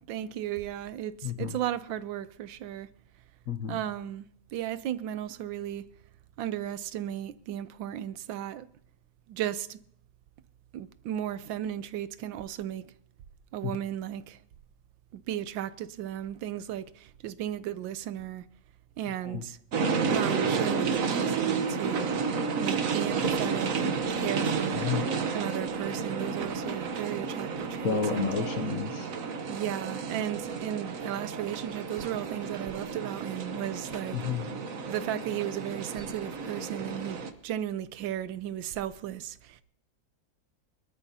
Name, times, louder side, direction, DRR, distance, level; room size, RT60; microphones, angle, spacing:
voice 1, 0.1-2.9 3.7-4.2 4.5-5.8 6.4-8.7 9.3-9.8 10.7-12.9 13.5-14.4 15.1-18.4 19.0-19.6 20.1-22.1 22.5-24.9 25.3-28.3 29.5-34.2 34.8-39.6, right 11 dB, 90° right, 1.4 m, -35 dB
voice 2, 1.2-1.5 3.5-3.8 13.6-13.7 19.2-19.4 24.8-25.0 27.8-29.1 34.1-34.5, left 6 dB, 60° left, 1.0 m, -31 dB
sound 1, 19.7-37.3, right 5 dB, 50° right, 1.3 m, -31 dB
23.0 x 12.5 x 2.8 m
omnidirectional pair, 2.0 m